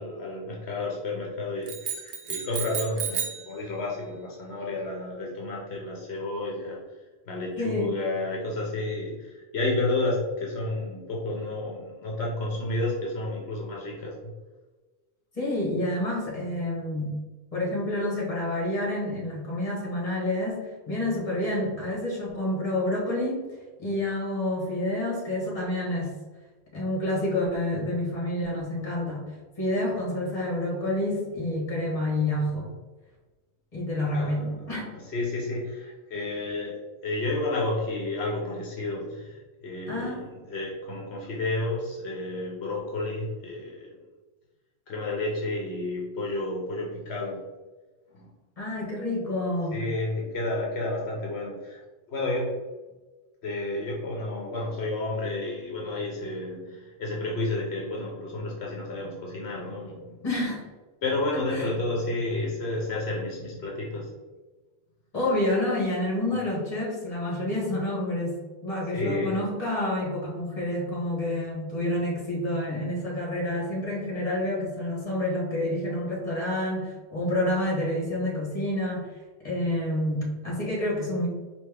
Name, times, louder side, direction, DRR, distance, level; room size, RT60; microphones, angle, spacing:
voice 1, 0.0-6.8 7.3-14.3 34.1-44.0 44.9-47.4 48.1-48.3 49.7-51.8 52.1-52.5 53.4-60.2 61.0-64.1 68.9-69.4, left 2 dB, 75° left, -2 dB, 1.0 m, -31 dB
sound 1, 1.7-3.5, right 7 dB, 70° right, 1.0 m, -32 dB
voice 2, 7.6-8.0 15.3-17.2 17.5-23.5 23.8-26.1 26.7-29.2 29.6-32.7 33.7-34.9 39.9-40.3 48.6-49.8 60.2-60.6 61.5-61.7 65.1-79.1 79.4-81.3, left 1 dB, 35° left, -4 dB, 1.6 m, -28 dB
4.4 x 2.9 x 3.4 m, 1.2 s
omnidirectional pair, 1.1 m